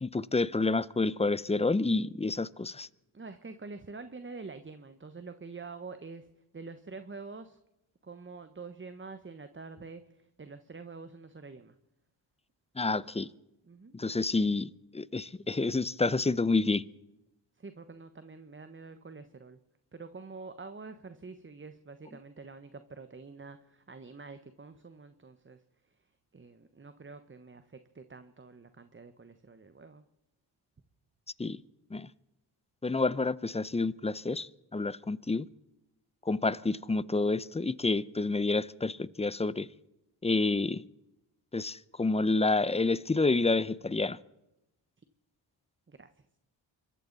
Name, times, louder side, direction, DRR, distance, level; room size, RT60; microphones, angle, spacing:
voice 1, 0.0-2.9 12.8-13.3 13.9-16.8 31.4-31.6 31.9-32.1 32.8-35.5 36.3-39.7 40.2-40.8 41.5-44.2, left 3 dB, 15° left, 0.6 m, -29 dB
voice 2, 3.1-6.3 6.5-7.6 8.0-11.7 13.6-14.0 17.6-19.6 19.9-25.6 26.3-30.0 45.9-46.1, right 4 dB, 25° right, 1.2 m, -46 dB
25.0 x 14.0 x 4.1 m
cardioid pair, 60°, 49 cm